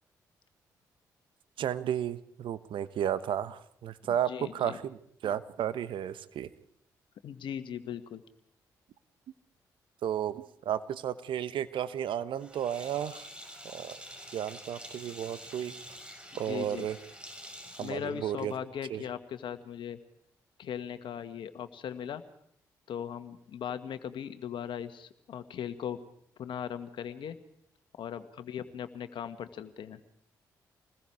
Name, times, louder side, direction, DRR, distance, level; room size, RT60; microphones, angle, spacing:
voice 1, 1.6-6.5 10.0-13.3 13.7-14.0 14.3-15.7 16.4-17.0 17.8-18.5 18.9-19.0, right 10 dB, 65° right, 14 dB, 1.1 m, -33 dB
voice 2, 4.1-4.8 7.2-8.2 16.5-16.9 17.8-20.0 20.6-22.2 22.9-26.0 26.4-27.4 28.0-30.0, left 9 dB, 65° left, 10 dB, 1.7 m, -38 dB
Sink (filling or washing), 12.4-18.8, equal, 10° right, 5.2 m, -48 dB
27.5 x 20.5 x 4.8 m, 0.72 s
hypercardioid pair, 45°, 9 cm